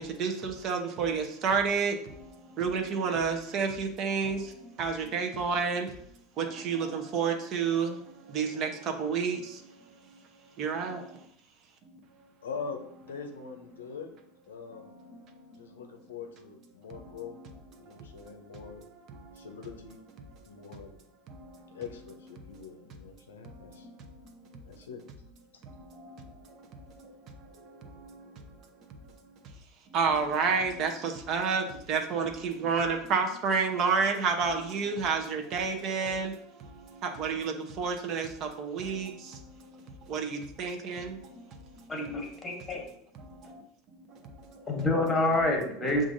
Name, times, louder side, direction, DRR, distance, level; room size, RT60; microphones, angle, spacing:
voice 1, 0.0-2.0 2.6-4.4 4.8-5.9 6.4-8.0 8.3-9.4 10.6-11.0 29.9-36.3 37.0-39.1 40.1-41.1, right 5 dB, 45° right, 4 dB, 0.7 m, -29 dB
voice 2, 12.4-14.1 14.5-15.0 15.5-17.4 17.8-18.9 19.3-20.0 20.5-21.0 21.7-23.9 24.6-25.0 25.5-25.6, left 5 dB, 75° left, 4 dB, 0.6 m, -43 dB
voice 3, 41.9-42.8 44.7-46.0, left 2 dB, 15° left, 1 dB, 1.3 m, -27 dB
7.0 x 2.5 x 2.6 m, 0.69 s
figure-of-eight pair, 80°, 0 cm